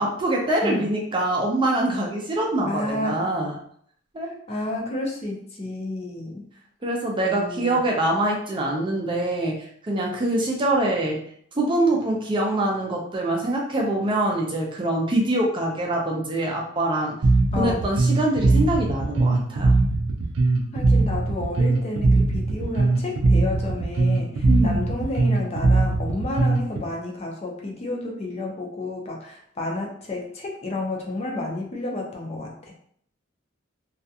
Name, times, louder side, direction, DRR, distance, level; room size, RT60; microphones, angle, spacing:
voice 1, 0.0-3.5 4.1-4.3 6.8-11.2 11.5-17.1 17.6-19.7 24.5-24.8, right 1 dB, 25° right, -1 dB, 0.4 m, -24 dB
voice 2, 2.6-3.2 4.5-6.4 7.2-7.8 17.5-17.8 20.7-32.7, left 2 dB, 30° left, 0 dB, 0.5 m, -31 dB
Bass guitar, 17.2-26.8, right 3 dB, 80° right, 0.5 m, -21 dB
2.4 x 2.2 x 2.6 m, 0.63 s
head